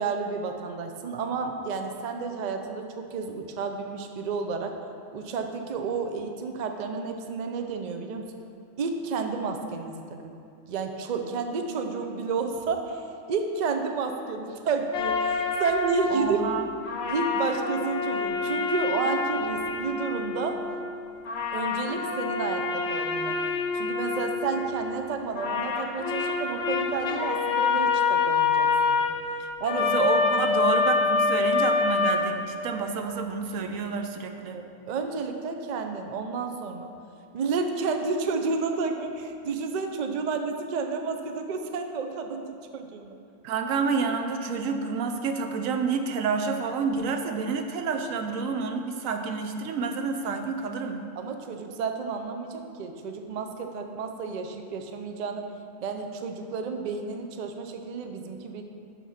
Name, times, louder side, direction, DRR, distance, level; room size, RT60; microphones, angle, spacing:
voice 1, 0.0-4.8 5.1-8.2 8.8-10.4 10.7-13.0 13.3-16.4 17.1-20.6 21.5-23.4 23.7-29.1 29.6-29.9 34.5-36.9 37.3-43.1 51.2-55.4 55.8-58.6, right 4 dB, 50° right, 5 dB, 0.5 m, -31 dB
sound 1, 14.9-16.6 16.8-21.0 21.2-25.1 25.3-32.9, left 4 dB, 60° left, 0.9 m, -27 dB
voice 2, 16.1-16.6 29.8-34.6 43.4-51.0, right 5 dB, 85° right, 6 dB, 1.1 m, -29 dB
7.1 x 5.9 x 5.7 m, 2.5 s
omnidirectional pair, 1.3 m